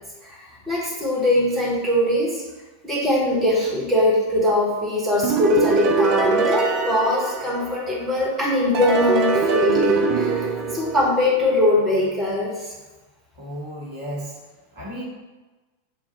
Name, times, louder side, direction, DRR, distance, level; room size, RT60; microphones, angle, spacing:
voice 1, 0.2-2.4 2.8-12.7, left 1 dB, 15° right, -6 dB, 1.4 m, -22 dB
sound 1, 5.2-8.1 8.7-11.6, right 4 dB, 40° right, 0.5 m, -22 dB
voice 2, 13.3-15.0, equal, 55° right, -5 dB, 1.2 m, -34 dB
6.5 x 2.4 x 3.1 m, 1.2 s
figure-of-eight pair, 90°, 0 cm